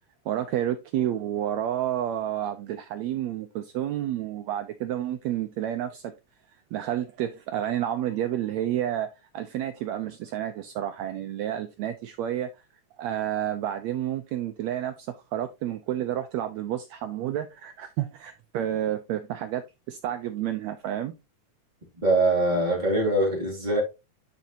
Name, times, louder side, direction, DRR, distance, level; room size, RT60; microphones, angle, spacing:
voice 1, 0.2-6.1 6.7-9.1 9.3-12.5 13.0-19.6 19.9-21.1, right 11 dB, 80° right, 1.6 m, -30 dB
voice 2, 21.9-23.8, right 2 dB, 15° right, 2.3 m, -23 dB
10.5 x 4.4 x 2.8 m
omnidirectional pair, 3.7 m